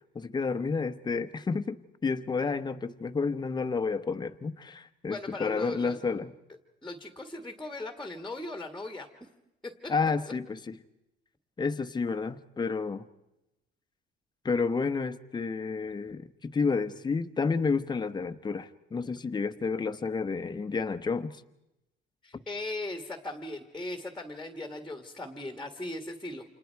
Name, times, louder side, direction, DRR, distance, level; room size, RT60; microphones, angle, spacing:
voice 1, 0.1-1.8 2.0-6.3 9.9-10.8 11.6-13.0 14.4-21.3, left 4 dB, 20° left, 10 dB, 1.0 m, -30 dB
voice 2, 5.0-6.0 6.8-9.1 9.6-9.9 22.2-26.4, left 2 dB, ahead, 5 dB, 1.7 m, -38 dB
30.0 x 27.5 x 4.6 m, 0.89 s
cardioid pair, 135°, 20 cm